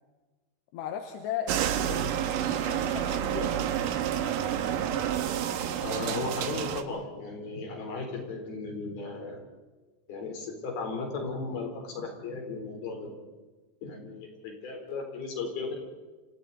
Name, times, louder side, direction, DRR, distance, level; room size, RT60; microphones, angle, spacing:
voice 1, 0.7-2.0 2.4-3.7, left 9 dB, 75° left, 4 dB, 3.2 m, -37 dB
sound 1, 1.5-6.8, right 10 dB, 75° right, 2.0 m, -29 dB
voice 2, 5.8-9.4 10.1-13.2 13.8-15.7, left 4 dB, 55° left, 2 dB, 5.8 m, -36 dB
29.0 x 28.0 x 4.2 m, 1.2 s
omnidirectional pair, 5.3 m